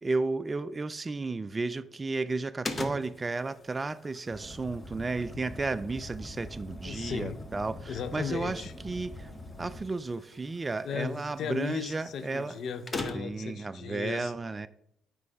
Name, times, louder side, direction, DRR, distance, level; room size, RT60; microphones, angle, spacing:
voice 1, 0.0-9.3 9.6-12.6 13.1-14.7, right 3 dB, 25° right, 0.4 m, -33 dB
sound 1, 2.6-13.5, left 2 dB, 30° left, 0.8 m, -44 dB
Car, 4.3-9.8, left 1 dB, 5° left, 1.4 m, -44 dB
voice 2, 6.8-7.4 7.9-8.7 10.8-14.3, left 7 dB, 70° left, 0.6 m, -36 dB
9.2 x 3.3 x 4.9 m
cardioid pair, 90°, 0 cm